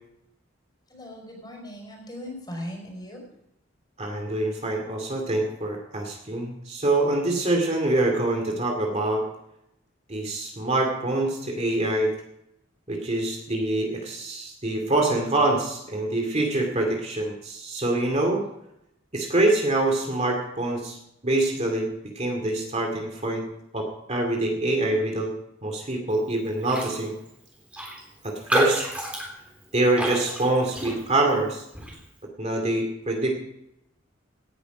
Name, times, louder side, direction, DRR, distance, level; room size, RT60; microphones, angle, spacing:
voice 1, 0.9-3.2, left 1 dB, 20° left, 1 dB, 5.0 m, -39 dB
voice 2, 4.0-9.2 10.1-12.1 12.9-18.4 19.1-21.0 21.2-23.5 23.7-25.3 25.6-27.1 28.2-28.8 29.7-31.7 32.4-33.3, right 2 dB, 35° right, 2 dB, 2.3 m, -25 dB
Raindrop, 26.6-27.0 27.3-27.4 27.7-31.3 31.7-32.0, equal, 5° right, 3.6 m, -29 dB
17.5 x 10.5 x 5.1 m, 0.82 s
head